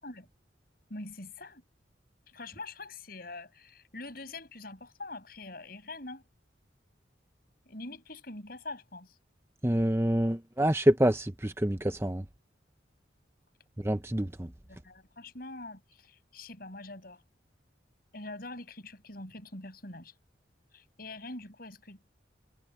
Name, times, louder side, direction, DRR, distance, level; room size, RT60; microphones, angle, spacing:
voice 1, 0.9-1.6 2.3-6.2 7.6-9.2 14.8-17.2 18.1-20.1 20.7-22.0, left 2 dB, 55° left, 6.6 m, -44 dB
voice 2, 9.6-12.3 13.8-14.5, right 1 dB, 15° right, 0.7 m, -27 dB
head